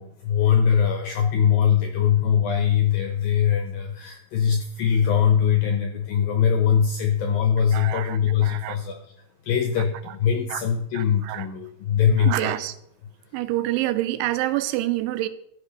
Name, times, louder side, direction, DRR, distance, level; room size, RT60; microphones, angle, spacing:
voice 1, 0.0-9.1 9.4-12.5, left 8 dB, 75° left, 2.2 m, -22 dB
voice 2, 7.7-8.8 10.5-10.6 10.9-11.5 12.2-12.7 13.3-15.3, right 15 dB, 90° right, 3.1 m, -27 dB
14.0 x 7.7 x 5.3 m
omnidirectional pair, 5.3 m